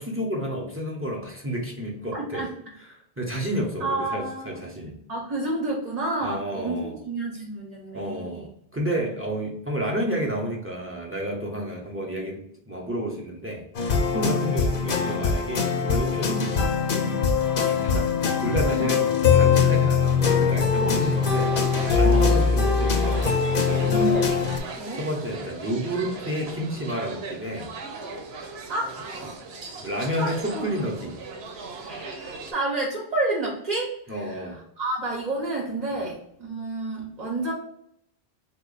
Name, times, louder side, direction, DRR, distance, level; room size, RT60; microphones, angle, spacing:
voice 1, 0.0-2.5 2.9-5.0 6.2-6.9 7.9-13.6 13.9-16.5 17.6-18.1 18.4-21.5 21.9-24.1 24.9-27.7 29.2-29.3 29.8-31.2 34.1-34.6 35.9-36.0, right 1 dB, 15° right, -2 dB, 0.6 m, -30 dB
voice 2, 2.1-2.5 3.8-4.6 5.1-8.5 11.6-11.7 14.1-14.4 16.3-16.5 18.8-19.0 20.7-21.0 22.0-22.2 23.9-24.3 24.8-25.0 28.7-29.3 30.2-30.7 31.8-37.5, right 2 dB, 45° right, -2 dB, 0.8 m, -30 dB
sound 1, 13.7-24.6, left 5 dB, 60° left, 0.8 m, -22 dB
sound 2, 20.7-32.5, right 3 dB, 90° right, 0.9 m, -38 dB
3.3 x 2.1 x 3.8 m, 0.72 s
omnidirectional pair, 1.0 m